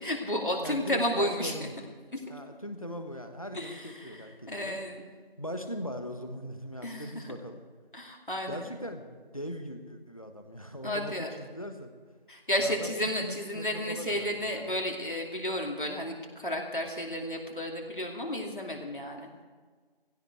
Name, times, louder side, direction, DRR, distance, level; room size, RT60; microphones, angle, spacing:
voice 1, 0.0-1.7 2.1-2.2 3.5-4.2 4.5-5.0 6.8-7.2 7.9-8.7 10.8-11.3 12.3-19.3, left 1 dB, 60° left, 0 dB, 2.7 m, -32 dB
voice 2, 0.6-1.7 2.3-4.8 5.4-7.6 8.5-11.9 12.6-14.7, equal, 35° left, 6 dB, 1.3 m, -40 dB
16.0 x 16.0 x 4.7 m, 1.5 s
figure-of-eight pair, 180°, 30 cm